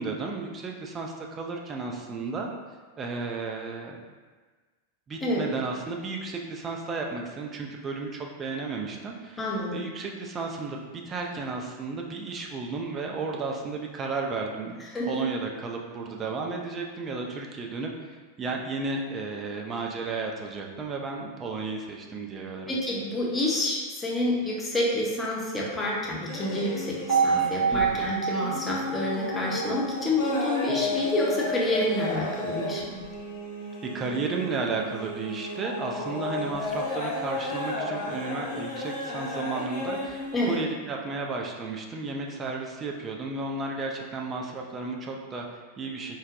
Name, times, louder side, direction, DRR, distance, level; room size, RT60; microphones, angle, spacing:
voice 1, 0.0-2.5 3.0-4.0 5.1-17.9 18.4-22.7 27.7-28.1 33.8-46.2, right 3 dB, 25° right, 1 dB, 0.4 m, -33 dB
voice 2, 9.4-9.7 14.9-15.2 22.7-33.0 40.3-40.6, left 1 dB, 15° left, -4 dB, 0.7 m, -28 dB
sound 1, 26.3-28.1 28.4-40.6, left 2 dB, 55° left, 0.6 m, -33 dB
sound 2, 27.1-31.1, right 6 dB, 55° right, 1.3 m, -28 dB
3.9 x 2.1 x 2.5 m, 1.4 s
figure-of-eight pair, 90°, 0 cm